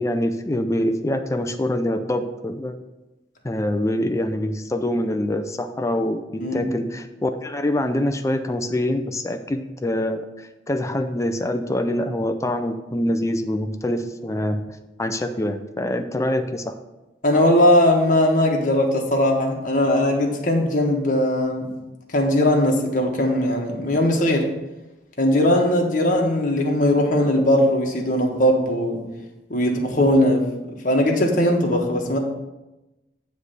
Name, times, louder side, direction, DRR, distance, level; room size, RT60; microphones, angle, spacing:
voice 1, 0.0-2.8 3.4-14.6 15.0-16.7, left 1 dB, 15° left, 7 dB, 0.4 m, -25 dB
voice 2, 17.2-21.7 22.1-24.4 25.2-29.0 29.5-30.4 30.8-32.2, left 1 dB, 50° left, 1 dB, 1.4 m, -19 dB
9.5 x 3.3 x 6.7 m, 1.0 s
head